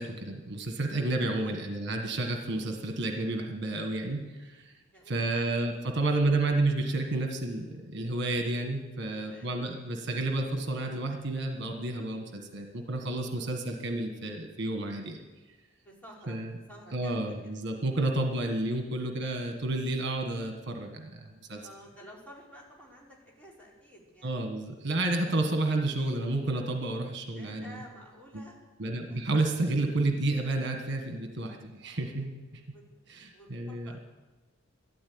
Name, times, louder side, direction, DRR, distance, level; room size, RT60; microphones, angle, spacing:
voice 1, 0.0-4.7 5.1-15.2 16.3-16.5 16.9-21.6 24.2-27.8 28.3-28.4 28.8-32.6 33.1-33.9, right 2 dB, 60° right, 4 dB, 1.5 m, -31 dB
voice 2, 4.9-5.6 5.9-6.2 9.0-9.6 13.4-13.6 15.8-16.4 16.7-17.5 18.0-18.2 21.6-24.3 27.4-28.6 29.1-29.2 32.7-32.8 33.3-34.0, equal, 5° left, -5 dB, 4.2 m, -51 dB
13.0 x 12.0 x 8.7 m, 1.2 s
head